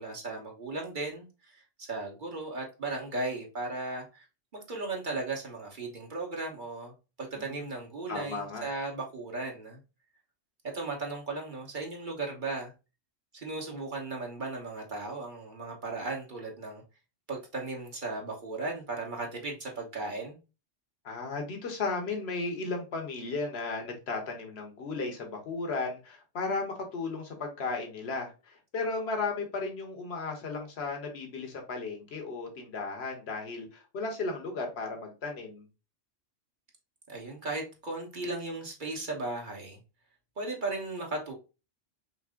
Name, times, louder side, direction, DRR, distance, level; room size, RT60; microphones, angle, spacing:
voice 1, 0.0-4.2 4.5-9.8 10.7-12.7 13.3-16.8 17.3-20.4 37.1-39.8 40.4-41.3, right 3 dB, 40° right, 1.3 m, -36 dB
voice 2, 7.3-7.6 8.1-8.6 21.0-35.6, left 3 dB, 60° left, 1.3 m, -35 dB
5.8 x 2.1 x 3.7 m
omnidirectional pair, 1.3 m